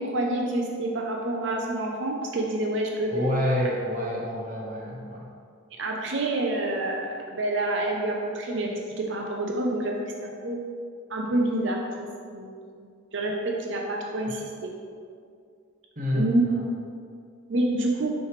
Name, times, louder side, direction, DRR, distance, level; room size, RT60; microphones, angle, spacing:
voice 1, 0.0-3.1 5.8-10.6 11.1-14.7 16.1-16.4 17.5-18.1, right 1 dB, 60° right, 0 dB, 0.6 m, -28 dB
voice 2, 3.1-5.3 16.0-16.6, equal, 40° right, -3 dB, 1.0 m, -28 dB
6.2 x 3.3 x 4.8 m, 2.3 s
head